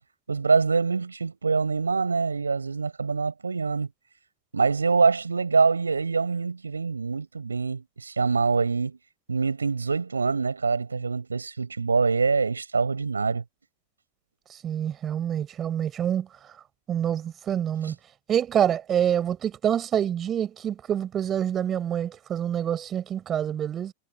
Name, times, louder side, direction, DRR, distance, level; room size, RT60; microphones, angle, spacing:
voice 1, 0.3-3.9 4.5-9.0 9.3-13.4 17.8-17.9, right 4 dB, 75° right, 7.1 m, -25 dB
voice 2, 14.6-16.3 16.9-18.0 18.3-23.9, right 9 dB, 25° right, 5.3 m, -26 dB
figure-of-eight pair, 90°, 0 cm